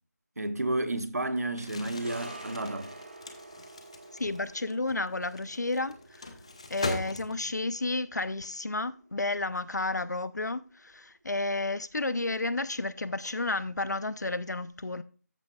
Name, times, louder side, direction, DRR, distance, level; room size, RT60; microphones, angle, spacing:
voice 1, 0.4-2.9, right 2 dB, 65° right, 1.3 m, -31 dB
Crumpling crinkling, 1.5-7.7, left 2 dB, 20° left, 0.7 m, -40 dB
sound 1, 1.9-10.3 10.6-10.8, right 2 dB, 40° right, 0.9 m, -50 dB
voice 2, 4.1-6.3 6.7-15.0, left 2 dB, 80° left, 0.6 m, -32 dB
13.5 x 6.6 x 2.3 m
figure-of-eight pair, 175°, 9 cm